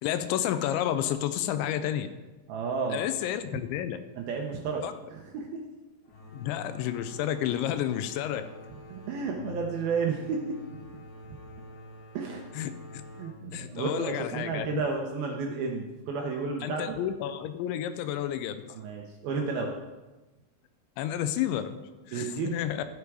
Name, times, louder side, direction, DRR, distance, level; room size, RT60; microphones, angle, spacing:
voice 1, 0.0-2.1 2.9-4.0 4.8-4.9 6.3-8.5 12.5-12.7 13.5-14.8 16.6-18.6 21.0-22.9, left 11 dB, 85° left, 10 dB, 2.9 m, -31 dB
voice 2, 2.5-3.0 4.2-4.8 5.1-5.6 8.9-10.6 12.1-12.4 13.2-17.0 18.7-19.7 22.1-22.6, right 5 dB, 75° right, 1 dB, 2.3 m, -32 dB
sound 1, 6.1-15.6, left 2 dB, 65° left, 3.3 m, -47 dB
13.5 x 8.1 x 4.8 m, 1.2 s
omnidirectional pair, 5.3 m